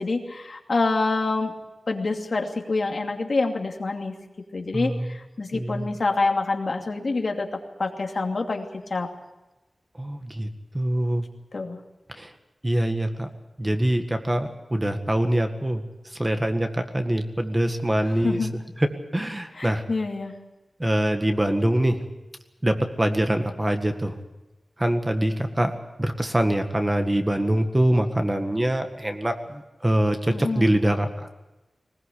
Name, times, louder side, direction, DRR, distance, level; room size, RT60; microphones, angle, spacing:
voice 1, 0.0-1.5 1.9-4.1 4.5-8.6 8.9-9.1 11.5-11.8 18.2-18.5 19.6-20.3 30.3-30.7, left 3 dB, 60° left, 3 dB, 2.6 m, -26 dB
voice 2, 4.7-5.2 5.5-5.9 10.0-10.5 10.7-11.3 12.1-12.3 12.6-13.3 13.6-18.5 18.8-19.8 20.8-22.0 22.6-24.1 24.8-25.7 26.0-31.3, right 1 dB, 20° right, 6 dB, 1.8 m, -24 dB
20.5 x 20.0 x 8.4 m, 1.0 s
wide cardioid pair, 95°, 0 cm